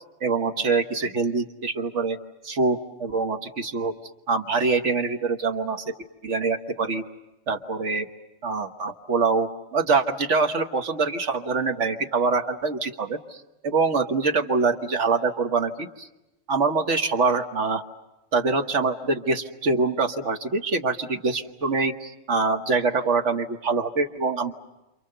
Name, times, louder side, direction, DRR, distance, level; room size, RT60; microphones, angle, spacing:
voice 1, 0.2-2.2 2.4-3.9 4.3-5.9 6.2-7.0 7.5-8.1 8.4-13.2 13.6-16.1 16.5-17.8 18.3-24.5, right 4 dB, 70° right, 6 dB, 1.6 m, -24 dB
28.5 x 27.5 x 6.7 m, 0.98 s
omnidirectional pair, 1.3 m